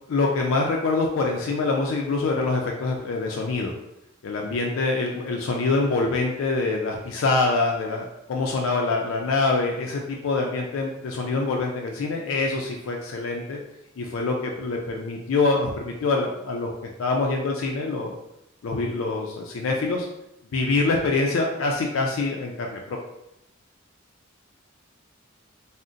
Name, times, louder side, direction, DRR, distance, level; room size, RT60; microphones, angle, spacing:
voice 1, 0.1-3.7 4.2-13.6 14.0-18.1 18.6-20.1 20.5-23.0, left 3 dB, 75° left, 0 dB, 0.4 m, -25 dB
2.6 x 2.0 x 3.6 m, 0.86 s
head